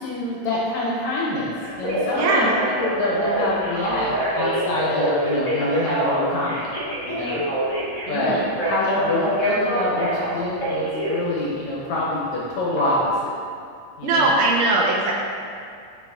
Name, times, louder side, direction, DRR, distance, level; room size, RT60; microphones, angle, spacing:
voice 1, 0.0-1.5 1.8-6.7 7.1-7.4 8.1-8.4 8.6-13.3 14.0-14.3, left 2 dB, 70° left, -5 dB, 1.9 m, -26 dB
Telephone, 1.6-11.2 12.8-12.9, right 1 dB, 40° left, 1.1 m, -25 dB
voice 2, 2.2-2.5 8.1-8.5 14.0-15.1, right 3 dB, 80° right, -2 dB, 2.1 m, -20 dB
7.8 x 4.8 x 3.6 m, 2.3 s
omnidirectional pair, 4.0 m